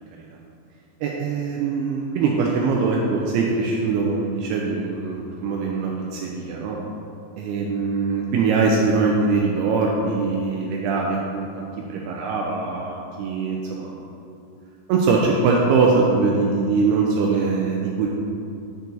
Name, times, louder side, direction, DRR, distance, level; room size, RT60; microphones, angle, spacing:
voice 1, 1.0-6.8 7.4-11.5 11.9-14.3 14.9-18.1, right 4 dB, 90° right, -1 dB, 2.3 m, -22 dB
10.5 x 4.6 x 4.0 m, 2.6 s
omnidirectional pair, 5.2 m